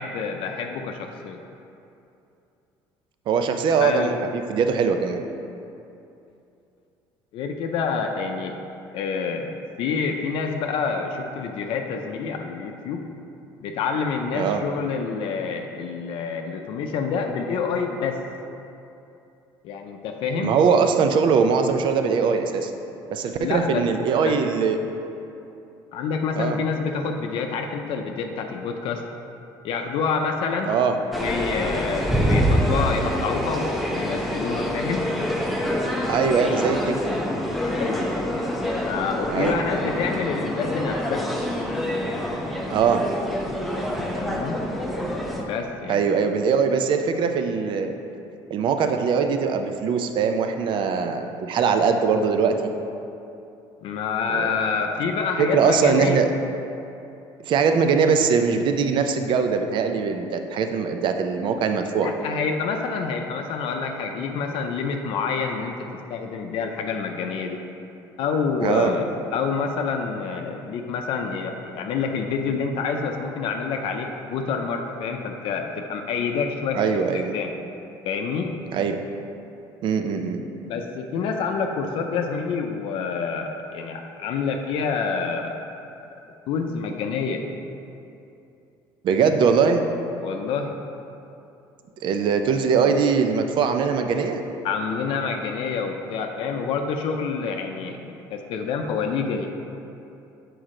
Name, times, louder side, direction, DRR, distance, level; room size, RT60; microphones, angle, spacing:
voice 1, 0.0-1.4 3.8-4.1 7.3-8.6 8.9-13.0 13.6-18.2 19.6-20.5 23.4-23.8 24.2-24.4 25.9-29.0 29.6-30.7 31.2-35.0 37.7-38.1 38.8-41.3 44.1-44.6 45.5-46.0 53.8-56.2 62.0-67.6 68.2-77.5 78.0-78.5 80.6-85.6 86.5-87.4 90.2-90.7 94.6-99.5, left 5 dB, 70° left, 3 dB, 0.5 m, -27 dB
voice 2, 3.3-5.2 14.3-14.6 20.4-22.7 23.1-24.8 26.3-26.6 30.7-31.0 36.1-37.0 39.3-39.6 42.7-43.0 45.9-47.9 48.5-52.6 54.3-54.6 55.4-56.3 57.4-62.1 68.6-68.9 76.7-77.4 78.7-79.0 79.8-80.4 89.0-89.8 92.0-94.4, right 6 dB, 60° right, 6 dB, 0.5 m, -21 dB
sound 1, 31.1-45.4, equal, ahead, 0.7 m, -26 dB
6.3 x 4.6 x 3.7 m, 2.7 s
supercardioid pair, 95°, 9 cm